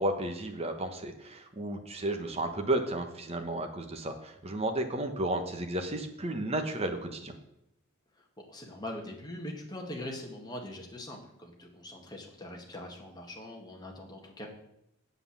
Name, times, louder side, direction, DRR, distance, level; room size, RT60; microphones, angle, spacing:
voice 1, 0.0-7.3, right 1 dB, 30° right, 6 dB, 1.2 m, -33 dB
voice 2, 8.4-14.5, left 1 dB, 20° left, 0 dB, 1.9 m, -42 dB
8.0 x 7.7 x 7.3 m, 0.80 s
head